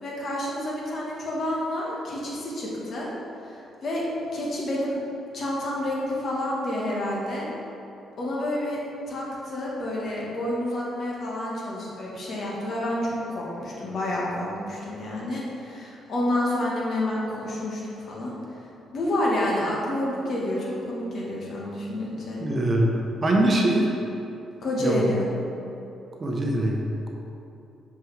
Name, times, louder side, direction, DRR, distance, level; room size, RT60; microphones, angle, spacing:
voice 1, 0.0-3.1 3.4-4.0 4.3-5.0 5.3-7.5 8.2-8.8 9.1-18.6 18.9-22.4 24.6-25.3, left 1 dB, 55° left, -4 dB, 1.4 m, -29 dB
voice 2, 22.4-23.9 24.8-25.0 26.2-26.8, right 1 dB, 35° right, -1 dB, 0.9 m, -23 dB
6.7 x 4.7 x 3.4 m, 2.8 s
cardioid pair, 90°, 0 cm